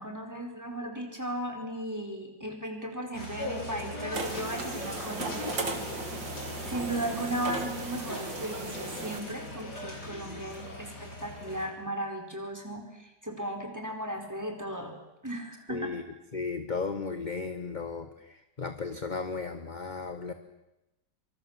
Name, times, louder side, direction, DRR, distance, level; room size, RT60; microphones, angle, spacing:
voice 1, 0.0-5.3 6.6-14.9 15.2-16.0, right 1 dB, 10° right, 3 dB, 4.7 m, -36 dB
sound 1, 3.1-11.7, left 2 dB, 65° left, 5.5 m, -40 dB
sound 2, 4.1-9.2, right 4 dB, 85° right, 3.1 m, -37 dB
voice 2, 15.7-16.0 16.3-18.1 18.6-20.3, left 4 dB, 25° left, 9 dB, 1.3 m, -34 dB
26.0 x 25.5 x 7.5 m, 0.96 s
omnidirectional pair, 1.9 m